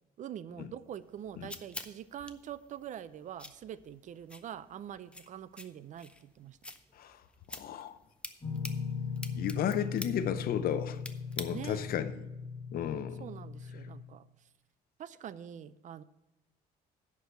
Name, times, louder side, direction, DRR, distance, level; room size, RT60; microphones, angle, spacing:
voice 1, 0.2-6.6 11.5-11.9 13.2-14.2 15.0-16.0, right 10 dB, 45° right, 0.4 m, -44 dB
sound 1, 0.9-11.9, left 1 dB, 5° left, 0.6 m, -49 dB
voice 2, 7.5-8.0 9.3-11.0 11.4-12.2 12.7-13.2, left 9 dB, 60° left, 0.7 m, -33 dB
sound 2, 8.4-14.0, left 6 dB, 25° left, 2.1 m, -38 dB
10.5 x 4.8 x 6.8 m
cardioid pair, 110°, 17 cm